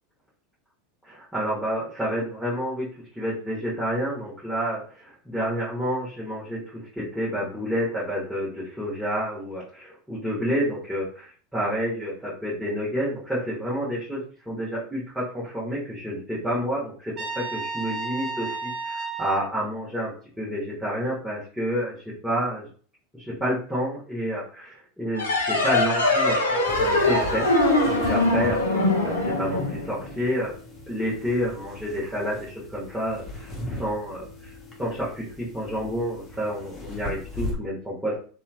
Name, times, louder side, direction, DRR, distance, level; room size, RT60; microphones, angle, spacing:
voice 1, 1.1-2.9 3.1-22.7 23.1-27.5 27.8-30.5 30.9-34.5 34.8-38.2, equal, 5° right, -8 dB, 1.1 m, -29 dB
Trumpet, 17.2-19.5, right 4 dB, 35° right, 1.0 m, -32 dB
sound 1, 25.1-30.4, left 2 dB, 80° left, 0.6 m, -22 dB
sound 2, 26.7-37.5, left 2 dB, 25° left, 0.8 m, -39 dB
2.8 x 2.3 x 2.4 m, 0.43 s
figure-of-eight pair, 85°, 0 cm